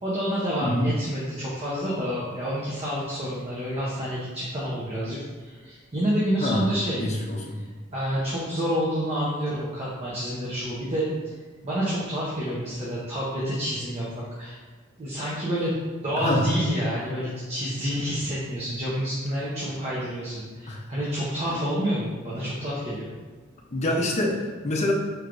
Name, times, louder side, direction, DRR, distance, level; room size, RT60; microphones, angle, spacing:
voice 1, 0.0-7.0 7.9-11.3 11.6-14.6 15.0-15.8 16.0-23.1, equal, 30° right, -8 dB, 0.7 m, -28 dB
voice 2, 0.6-0.9 6.4-6.7 7.0-7.6 16.2-16.4 20.7-20.8 23.7-24.9, left 1 dB, 30° left, 0 dB, 0.5 m, -26 dB
4.5 x 3.3 x 2.5 m, 1.3 s
head